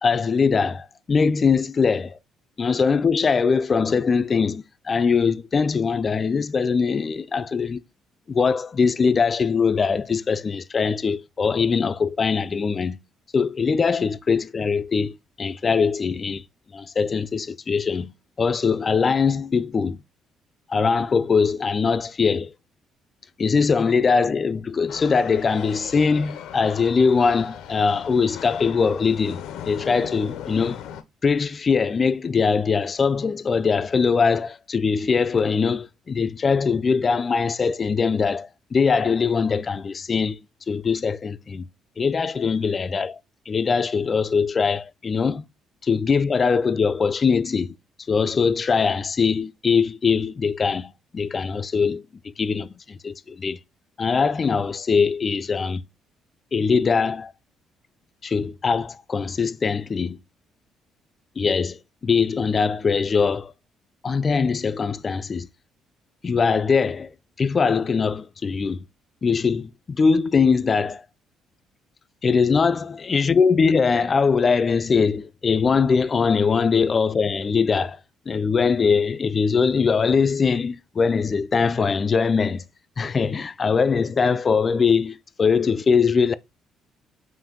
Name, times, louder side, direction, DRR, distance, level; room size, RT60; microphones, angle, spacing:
voice 1, 0.0-2.2 2.6-7.8 8.3-13.0 13.3-16.4 16.7-18.1 18.4-20.0 20.7-22.5 23.4-30.8 31.2-40.4 40.7-41.7 42.0-43.2 43.5-45.4 45.8-47.7 48.1-53.6 54.0-55.8 56.5-57.3 58.2-60.2 61.4-61.8 62.0-63.5 64.0-65.5 66.2-67.1 67.4-68.8 69.2-71.0 72.2-78.0 78.3-82.6 83.0-86.3, left 5 dB, 35° left, 0.3 m, -22 dB
sound 1, 24.9-31.0, left 10 dB, 85° left, 0.6 m, -38 dB
5.6 x 2.6 x 3.7 m
cardioid pair, 95°, 0 cm